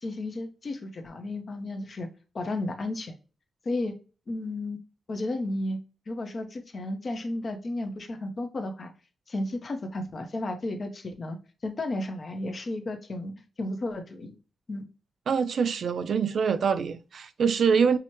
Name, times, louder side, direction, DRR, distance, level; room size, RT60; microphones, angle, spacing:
voice 1, 0.0-2.1 2.3-3.1 3.6-3.9 4.3-4.8 5.1-5.8 6.1-8.9 9.3-13.3 13.6-14.3 14.7-14.8 17.8-17.9, left 2 dB, 35° left, 0.7 m, -33 dB
voice 2, 15.3-18.0, right 6 dB, 55° right, 0.3 m, -24 dB
5.7 x 2.1 x 3.0 m
wide cardioid pair, 175°, 0 cm